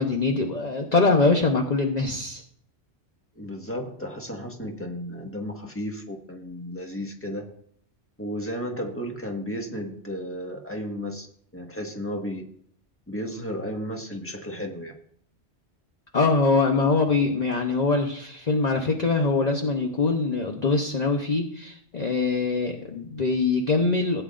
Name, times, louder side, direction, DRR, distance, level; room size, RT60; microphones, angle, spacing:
voice 1, 0.0-2.4 16.1-24.2, left 3 dB, 40° left, 2 dB, 1.0 m, -23 dB
voice 2, 3.3-7.5 8.2-11.3 11.5-12.4 13.1-14.9, equal, 10° left, 2 dB, 1.5 m, -33 dB
16.5 x 9.1 x 2.5 m, 0.65 s
omnidirectional pair, 1.2 m